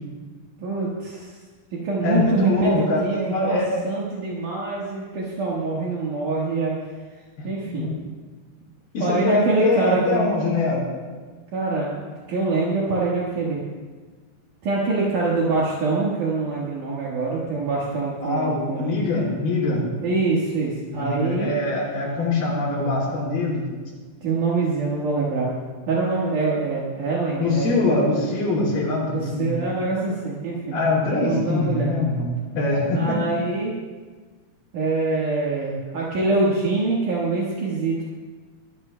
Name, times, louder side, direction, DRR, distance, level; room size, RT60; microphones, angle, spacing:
voice 1, 0.6-1.3 1.8-3.6 3.8-6.8 7.4-7.9 9.0-10.3 11.5-13.6 14.6-18.9 19.9-21.5 24.2-25.5 25.9-27.9 29.1-30.8 31.1-31.9 32.9-33.8 34.7-38.0, right 3 dB, 65° right, -5 dB, 2.9 m, -24 dB
voice 2, 2.0-3.8 7.4-8.0 8.9-10.9 18.2-19.9 20.9-23.7 27.4-29.6 30.7-33.2, left 2 dB, 80° left, -6 dB, 6.5 m, -23 dB
22.0 x 13.5 x 2.2 m, 1.4 s
omnidirectional pair, 4.3 m